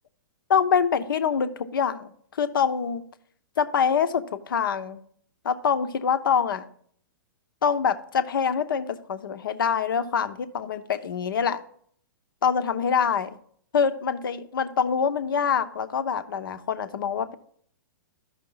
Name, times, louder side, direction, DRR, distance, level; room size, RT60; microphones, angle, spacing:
voice 1, 0.5-3.0 3.6-5.0 5.4-6.7 7.6-11.6 12.4-13.4 13.7-17.3, left 7 dB, 75° left, 11 dB, 0.8 m, -25 dB
13.0 x 5.9 x 3.9 m, 0.62 s
hypercardioid pair, 125°, 11 cm